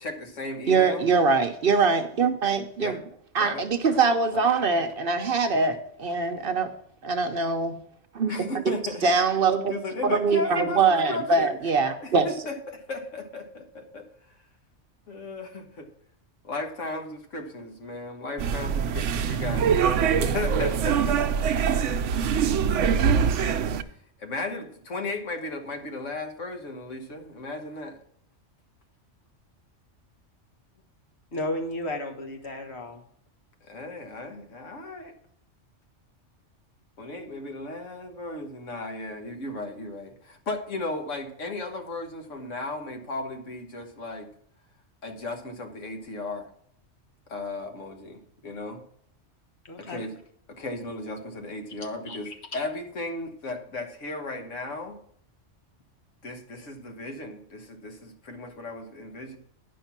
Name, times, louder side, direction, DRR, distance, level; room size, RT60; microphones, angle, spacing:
voice 1, 0.0-1.1 2.8-3.0 3.4-4.0 4.3-4.4 8.3-9.2 9.7-11.6 12.0-14.1 15.1-15.9 16.4-21.4 24.2-28.0 33.6-35.1 37.0-44.3 45.0-46.5 47.3-48.8 49.8-50.2 50.5-52.3 52.5-55.0 56.2-59.4, left 2 dB, 85° left, 4 dB, 1.7 m, -35 dB
voice 2, 0.7-3.0 3.3-6.7 7.0-7.7 8.1-8.3 9.0-9.7 10.0-12.3, right 4 dB, 55° right, 8 dB, 0.8 m, -23 dB
sound 1, 18.4-23.8, right 7 dB, 80° right, 1.0 m, -23 dB
voice 3, 31.3-33.0 49.6-50.0 52.1-52.3, left 1 dB, 60° left, 4 dB, 1.7 m, -33 dB
10.0 x 5.4 x 5.9 m, 0.66 s
omnidirectional pair, 1.3 m